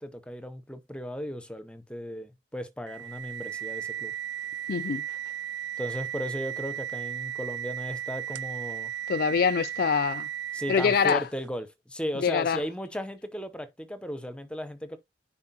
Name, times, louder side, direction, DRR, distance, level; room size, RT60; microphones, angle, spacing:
voice 1, 0.0-4.1 5.8-8.9 10.5-15.0, equal, 5° left, 0.7 m, -36 dB
sound 1, 2.9-11.4, right 10 dB, 75° right, 0.3 m, -35 dB
voice 2, 4.7-5.0 9.1-10.3 10.7-11.2 12.2-12.6, left 6 dB, 55° left, 0.3 m, -24 dB
9.6 x 4.3 x 2.8 m
head